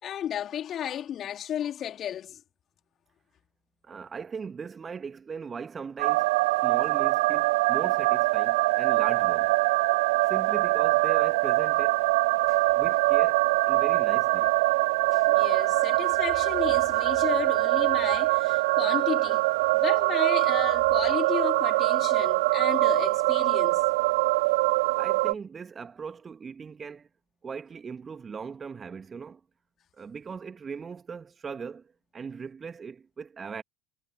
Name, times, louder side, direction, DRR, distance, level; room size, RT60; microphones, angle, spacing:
voice 1, 0.0-2.4 12.5-12.7 15.1-19.5 19.7-23.8, left 10 dB, 40° left, 3.5 m, -33 dB
voice 2, 3.8-6.3 6.6-9.5 10.3-12.1 12.7-14.5 25.0-27.1 27.4-29.4 29.9-33.6, right 5 dB, 30° right, 1.7 m, -39 dB
sound 1, 6.0-25.3, right 22 dB, 65° right, 0.4 m, -23 dB
figure-of-eight pair, 65°, 0 cm